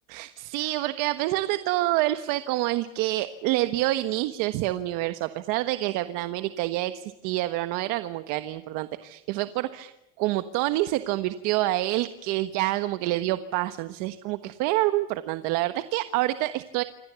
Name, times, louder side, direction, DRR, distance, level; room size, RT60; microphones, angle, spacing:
voice 1, 0.1-9.9 10.2-16.8, right 16 dB, 70° right, 11 dB, 1.4 m, -27 dB
27.5 x 25.0 x 7.1 m, 0.88 s
cardioid pair, 170°, 33 cm